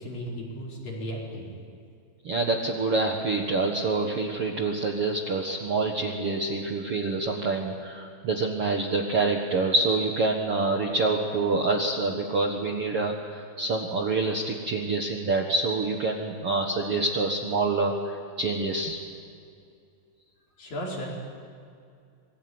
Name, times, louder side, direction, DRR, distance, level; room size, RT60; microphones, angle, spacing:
voice 1, 0.0-1.5 20.6-21.2, equal, 50° left, -3 dB, 6.4 m, -35 dB
voice 2, 2.2-19.0, right 3 dB, 90° right, 2 dB, 1.2 m, -26 dB
26.0 x 22.5 x 9.6 m, 2.3 s
omnidirectional pair, 5.4 m